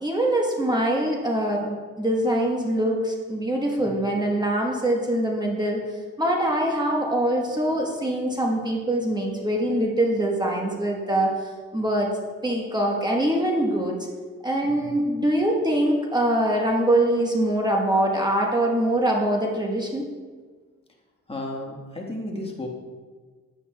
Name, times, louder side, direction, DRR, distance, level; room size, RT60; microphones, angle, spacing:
voice 1, 0.0-12.1 12.4-14.0 14.4-20.0, right 1 dB, 15° right, -1 dB, 1.1 m, -23 dB
voice 2, 14.6-15.0 21.3-22.7, left 1 dB, 20° left, 0 dB, 1.4 m, -34 dB
10.0 x 8.3 x 2.3 m, 1.5 s
cardioid pair, 90°, 30 cm